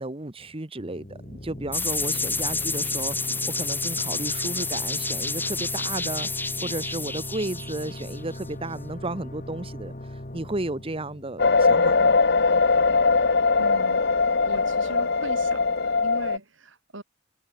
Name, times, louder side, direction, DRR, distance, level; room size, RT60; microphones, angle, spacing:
voice 1, 0.0-12.2, right 2 dB, 30° right, 1.2 m, -34 dB
sound 1, 0.8-12.2, left 1 dB, 40° left, 1.9 m, -39 dB
sound 2, 1.7-8.4, left 3 dB, 10° left, 4.1 m, -29 dB
sound 3, 11.4-16.4, left 4 dB, 60° left, 1.2 m, -21 dB
voice 2, 13.6-14.0 14.4-17.0, right 1 dB, 70° right, 3.9 m, -39 dB
head